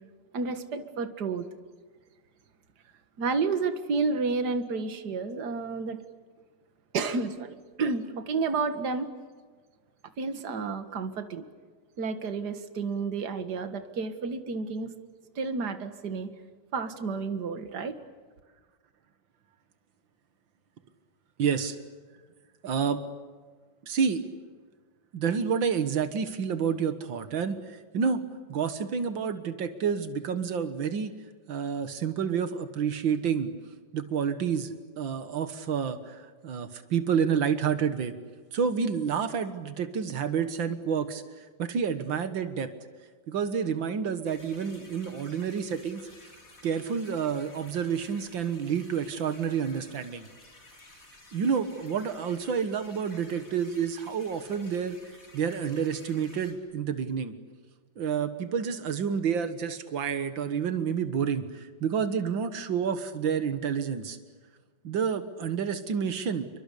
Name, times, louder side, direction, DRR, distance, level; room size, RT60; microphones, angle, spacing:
voice 1, 0.3-1.5 3.2-6.0 6.9-9.1 10.2-11.4 12.0-14.9 15.4-16.3 16.7-18.0, right 4 dB, 60° right, 9 dB, 2.2 m, -31 dB
voice 2, 21.4-21.8 22.6-23.0 23.9-24.2 25.1-28.2 28.5-31.1 31.5-33.5 33.9-38.2 38.5-42.7 43.3-46.1 46.6-50.3 51.3-55.0 55.3-57.4 58.0-64.2 64.8-66.5, right 7 dB, 85° right, 10 dB, 2.2 m, -29 dB
sound 1, 44.2-56.5, left 2 dB, 45° left, 5.0 m, -53 dB
29.0 x 24.0 x 8.4 m, 1.5 s
omnidirectional pair, 2.0 m